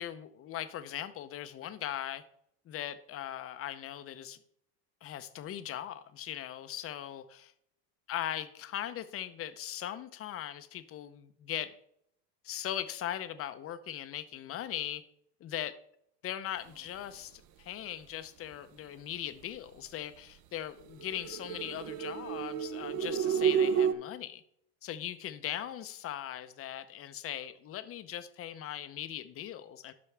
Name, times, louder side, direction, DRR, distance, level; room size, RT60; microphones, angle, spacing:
voice 1, 0.0-2.2 2.7-4.4 5.0-7.5 8.1-11.7 12.4-15.0 15.4-15.7 16.2-24.4 24.8-29.9, left 11 dB, 30° left, 12 dB, 0.6 m, -39 dB
sound 1, 21.0-23.9, right 7 dB, 40° right, 0.6 m, -30 dB
12.0 x 5.6 x 3.3 m, 0.72 s
supercardioid pair, 135°, 46 cm